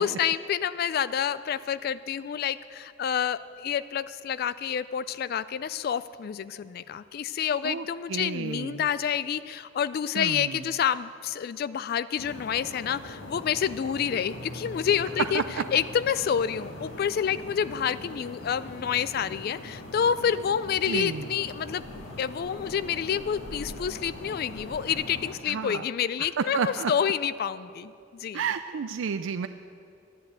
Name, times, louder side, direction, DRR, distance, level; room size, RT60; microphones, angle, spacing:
voice 1, 0.0-15.4 15.7-21.8 22.2-28.4, left 8 dB, 50° left, 15 dB, 0.3 m, -28 dB
voice 2, 7.6-8.9 10.2-10.6 15.3-15.4 20.9-21.3 25.5-25.8 26.4-26.9 28.3-29.5, right 6 dB, 80° right, 9 dB, 0.4 m, -31 dB
sound 1, 12.2-25.3, left 1 dB, 85° left, 1.8 m, -41 dB
12.0 x 10.5 x 8.0 m, 2.5 s
head